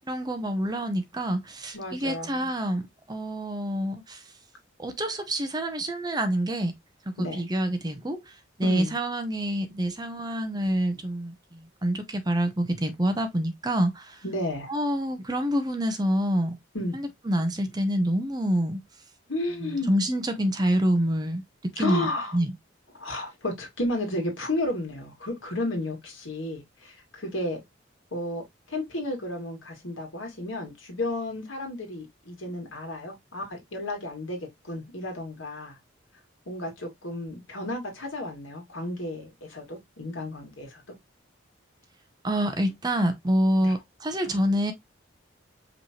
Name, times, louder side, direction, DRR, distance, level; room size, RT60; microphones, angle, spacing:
voice 1, 0.1-4.3 4.8-6.7 7.1-14.2 14.7-16.5 16.9-18.8 19.6-22.5 42.2-44.7, equal, 20° right, 0.6 m, -27 dB
voice 2, 1.7-2.4 7.2-7.4 8.6-8.9 14.2-14.7 16.7-16.9 19.3-20.0 21.8-22.4 22.9-27.6 28.1-28.4 28.7-34.4 34.6-35.8 36.5-40.8 43.6-43.7, left 1 dB, 85° left, 1.9 m, -32 dB
5.1 x 3.1 x 2.8 m
head